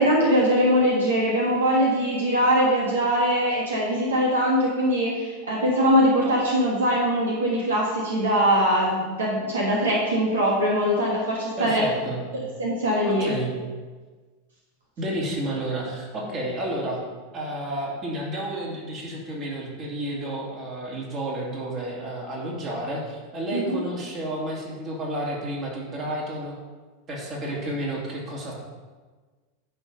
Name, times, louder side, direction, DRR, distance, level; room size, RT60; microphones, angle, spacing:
voice 1, 0.0-11.8 12.6-13.3 23.5-23.8, equal, 70° right, -3 dB, 1.6 m, -22 dB
voice 2, 11.6-12.2 13.0-13.5 15.0-17.0 17.3-26.6 27.1-28.5, right 1 dB, 35° right, -3 dB, 2.8 m, -31 dB
10.5 x 4.6 x 5.3 m, 1.4 s
figure-of-eight pair, 85°, 0 cm